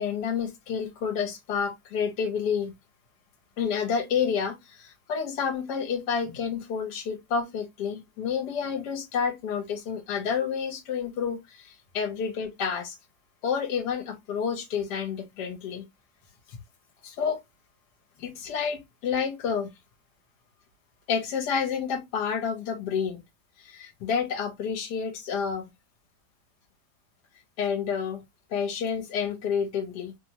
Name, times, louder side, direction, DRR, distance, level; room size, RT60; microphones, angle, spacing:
voice 1, 0.0-2.7 3.6-13.0 13.4-15.9 16.5-16.6 17.0-17.4 18.2-19.7 21.1-23.2 23.6-25.7 27.6-28.2 28.5-30.1, left 6 dB, 75° left, 1.3 m, -29 dB
3.1 x 2.1 x 2.7 m
omnidirectional pair, 1.8 m